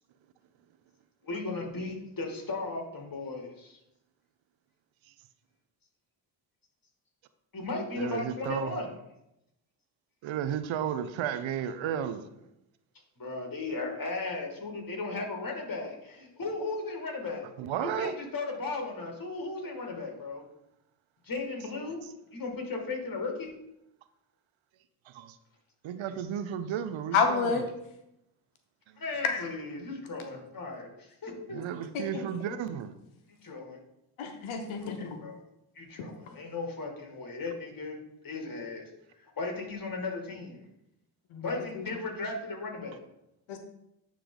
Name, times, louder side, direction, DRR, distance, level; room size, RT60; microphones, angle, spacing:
voice 1, 1.2-3.8 7.5-8.9 13.2-17.5 17.8-20.4 21.2-22.0 22.3-23.5 29.0-31.6 33.4-33.8 34.8-35.4 35.8-38.0 38.2-38.9 39.2-40.6 41.4-43.0, left 3 dB, 45° left, 2.1 m, -36 dB
voice 2, 8.0-8.8 10.2-12.3 17.6-18.1 25.1-25.4 25.8-27.7 31.5-32.9, right 9 dB, 75° right, 0.7 m, -33 dB
voice 3, 27.1-27.7 29.2-29.5 31.9-32.2 34.2-35.2 41.3-41.5 41.7-41.8 43.5-43.6, left 5 dB, 90° left, 0.9 m, -29 dB
10.0 x 3.4 x 3.8 m
supercardioid pair, 50°, 47 cm